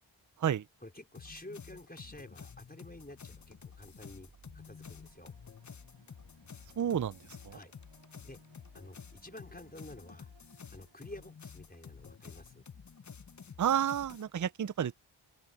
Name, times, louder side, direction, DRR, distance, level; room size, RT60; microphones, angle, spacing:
voice 1, 0.8-5.3 7.5-7.7 8.2-8.4 8.7-10.3 10.7-12.7, left 1 dB, 20° left, 4.4 m, -50 dB
sound 1, 1.1-14.2, left 6 dB, 40° left, 0.8 m, -51 dB
sound 2, 2.7-11.4, right 5 dB, 75° right, 3.0 m, -66 dB
voice 2, 6.8-7.2 7.4-7.6 13.6-15.0, right 9 dB, 40° right, 0.5 m, -30 dB
open air
wide cardioid pair, 80°, 46 cm